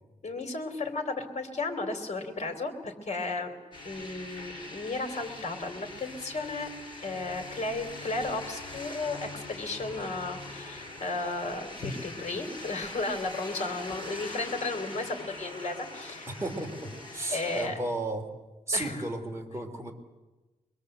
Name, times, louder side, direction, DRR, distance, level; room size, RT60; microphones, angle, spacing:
voice 1, 0.2-3.6 3.8-6.7 7.0-16.3 17.3-17.8 18.7-19.1, left 3 dB, 55° left, 5 dB, 3.3 m, -34 dB
sound 1, 3.7-17.7, left 2 dB, 35° left, 6.0 m, -43 dB
voice 2, 16.3-18.3 18.7-19.9, right 2 dB, 20° right, 2 dB, 3.2 m, -33 dB
24.5 x 22.5 x 7.9 m, 1.1 s
wide cardioid pair, 175°, 14 cm